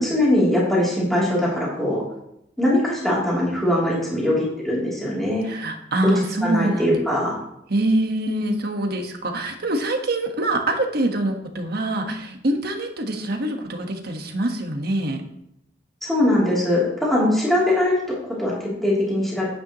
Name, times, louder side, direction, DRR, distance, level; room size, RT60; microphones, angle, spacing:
voice 1, 0.0-2.0 2.6-5.5 6.0-6.1 6.4-7.4 16.0-18.0 18.2-19.5, left 1 dB, ahead, -7 dB, 3.1 m, -21 dB
voice 2, 5.4-7.0 7.7-15.2, right 1 dB, 60° right, 3 dB, 1.4 m, -24 dB
10.0 x 9.2 x 3.1 m, 0.79 s
head